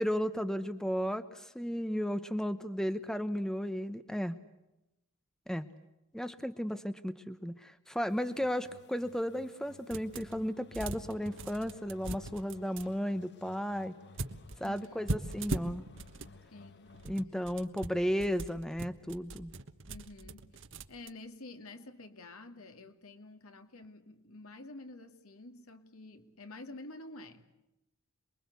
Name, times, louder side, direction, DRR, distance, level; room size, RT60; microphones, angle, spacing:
voice 1, 0.0-4.4 5.5-5.7 6.1-14.0 14.6-15.9 17.1-19.5, equal, ahead, 11 dB, 0.9 m, -34 dB
sound 1, 8.1-17.2, left 4 dB, 50° left, 1.3 m, -57 dB
sound 2, 9.9-10.4 10.7-12.9 14.2-16.3 16.9-21.1, right 2 dB, 55° right, 1.4 m, -40 dB
voice 2, 14.6-15.1 16.5-16.9 19.9-20.6 20.9-27.4, left 2 dB, 70° left, 7 dB, 2.5 m, -49 dB
28.0 x 22.5 x 8.3 m, 0.92 s
head